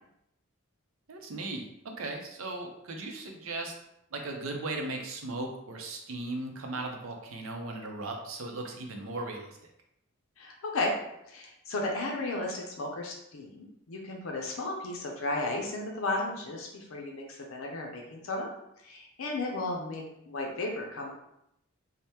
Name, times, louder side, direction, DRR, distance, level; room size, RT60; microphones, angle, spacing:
voice 1, 1.1-1.6 2.0-3.7 4.1-9.6, right 2 dB, 80° right, 2 dB, 0.6 m, -37 dB
voice 2, 10.4-10.9 11.3-18.5 18.8-21.1, left 2 dB, 85° left, 0 dB, 0.5 m, -34 dB
3.4 x 2.1 x 2.8 m, 0.80 s
head